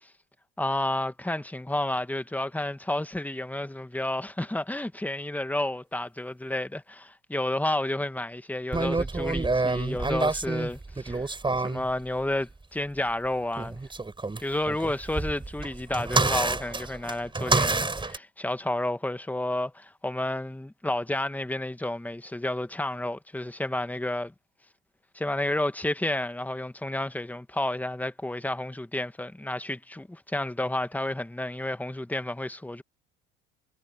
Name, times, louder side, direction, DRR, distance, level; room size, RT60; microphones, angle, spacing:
voice 1, 0.6-11.3 11.6-13.8 14.4-24.3 25.2-32.8, left 1 dB, 5° left, 1.8 m, -31 dB
sound 1, 8.7-11.9 13.5-18.2, right 3 dB, 15° right, 4.4 m, -28 dB
hypercardioid pair, 70°, 30 cm